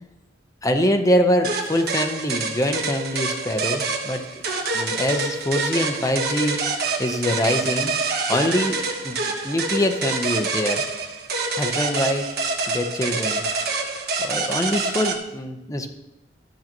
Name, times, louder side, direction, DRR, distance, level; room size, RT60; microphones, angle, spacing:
voice 1, 0.6-4.2 4.7-6.6 7.0-7.9 8.3-9.2 9.4-10.8 11.5-12.3 12.7-13.4 14.2-15.9, equal, 20° left, 5 dB, 0.8 m, -24 dB
sound 1, 1.4-15.2, right 3 dB, 65° right, 1.3 m, -26 dB
13.0 x 7.4 x 3.0 m, 0.94 s
head